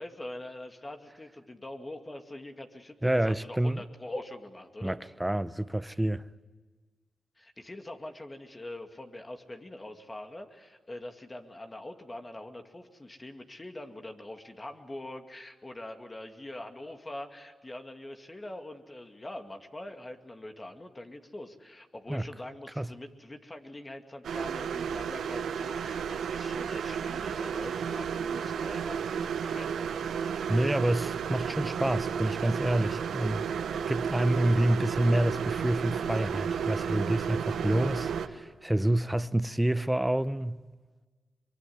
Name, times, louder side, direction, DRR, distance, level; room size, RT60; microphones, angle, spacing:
voice 1, 0.0-5.0 7.4-29.9, left 1 dB, 25° left, 2.3 m, -43 dB
voice 2, 3.0-3.8 4.8-6.3 22.1-22.3 22.8-22.9 30.5-33.5 33.9-40.6, right 1 dB, 10° right, 0.9 m, -28 dB
sound 1, 24.2-38.3, right 7 dB, 85° right, 1.2 m, -32 dB
23.5 x 22.5 x 9.6 m
cardioid pair, 55°, 0 cm